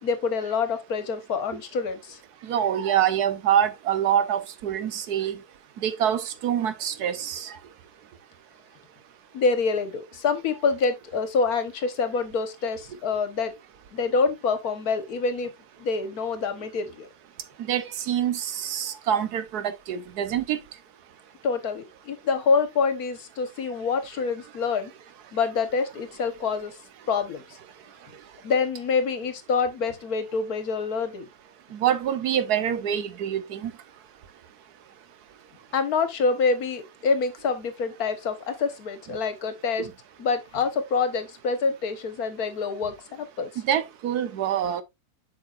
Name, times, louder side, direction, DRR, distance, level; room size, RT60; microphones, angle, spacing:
voice 1, 0.0-2.2 9.3-13.5 13.9-15.5 15.8-17.1 21.4-24.9 25.3-26.7 27.1-27.6 28.4-31.3 35.7-39.9 40.2-43.5, left 4 dB, 70° left, 1.7 m, -26 dB
voice 2, 2.5-5.4 5.8-7.5 17.7-19.6 19.9-20.6 31.7-33.7 43.7-44.8, right 9 dB, 75° right, 1.4 m, -25 dB
7.9 x 5.8 x 2.5 m
omnidirectional pair, 1.7 m